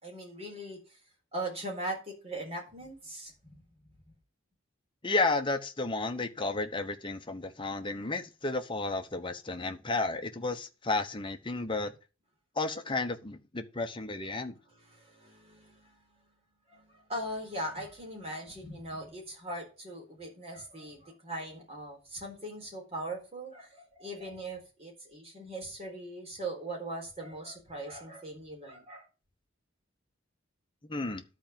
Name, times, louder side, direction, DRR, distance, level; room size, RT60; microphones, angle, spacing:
voice 1, 0.0-1.0 1.3-3.6 3.9-4.1 14.8-16.0 16.7-29.1, right 1 dB, 30° right, 4.0 m, -40 dB
voice 2, 5.0-11.9 12.6-14.6 30.8-31.2, left 3 dB, 25° left, 1.0 m, -32 dB
11.5 x 4.7 x 7.6 m
head